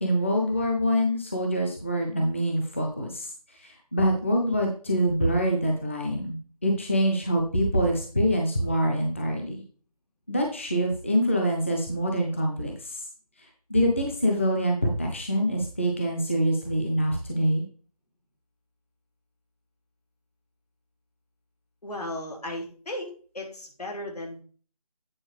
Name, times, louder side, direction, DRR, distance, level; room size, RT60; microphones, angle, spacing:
voice 1, 0.0-9.6 10.3-13.0 13.7-17.6, equal, 20° left, 1 dB, 0.7 m, -25 dB
voice 2, 21.8-24.4, left 1 dB, 80° left, 1 dB, 3.1 m, -36 dB
8.8 x 4.1 x 4.8 m, 0.41 s
figure-of-eight pair, 175°, 20 cm